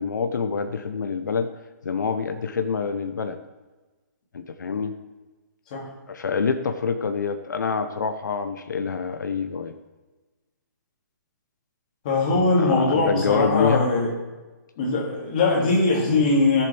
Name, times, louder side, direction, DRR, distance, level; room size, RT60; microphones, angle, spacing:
voice 1, 0.0-1.5 1.8-3.4 4.3-4.9 6.1-9.7 12.3-13.8, left 5 dB, 85° left, 7 dB, 1.0 m, -26 dB
voice 2, 12.0-14.1 14.8-16.6, left 3 dB, 25° left, -4 dB, 2.5 m, -21 dB
17.0 x 7.5 x 3.5 m, 1.2 s
hypercardioid pair, 180°, 10 cm